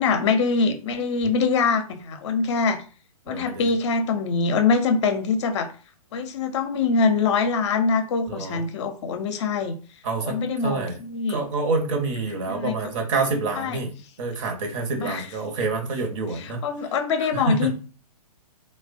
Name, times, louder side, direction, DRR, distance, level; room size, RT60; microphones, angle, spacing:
voice 1, 0.0-2.8 3.3-5.7 6.1-9.7 10.2-11.4 12.5-12.8 13.5-13.8 15.0-15.3 16.4-17.7, left 4 dB, 50° left, 8 dB, 0.5 m, -24 dB
voice 2, 3.3-3.7 8.3-8.6 10.0-10.4 10.6-11.0 11.3-13.9 14.2-16.6 17.2-17.7, right 3 dB, 55° right, 4 dB, 0.8 m, -27 dB
3.2 x 2.1 x 2.5 m, 0.37 s
figure-of-eight pair, 125°, 19 cm